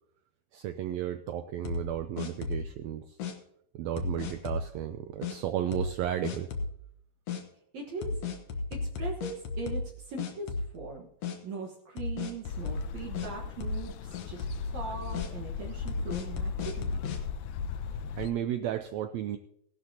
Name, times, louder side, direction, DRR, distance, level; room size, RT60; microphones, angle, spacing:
voice 1, 0.5-3.2 3.7-6.5 18.2-19.4, right 11 dB, 85° right, 9 dB, 1.5 m, -33 dB
sound 1, 1.6-2.8 3.2-3.3 4.0-4.7 5.2-5.4 5.7-6.0 6.2-6.8 7.3-7.4 8.0-9.9 10.2-10.9 11.2-11.4 12.0-13.3 13.6-13.9 14.1-14.7 15.1-15.3 15.9-17.2, left 4 dB, 60° left, 2.0 m, -34 dB
voice 2, 7.7-8.2 8.7-11.1 11.4-17.0, right 4 dB, 65° right, -1 dB, 2.4 m, -40 dB
sound 2, 12.4-18.3, left 6 dB, 80° left, 2.0 m, -37 dB
17.0 x 12.0 x 2.8 m, 0.72 s
omnidirectional pair, 3.7 m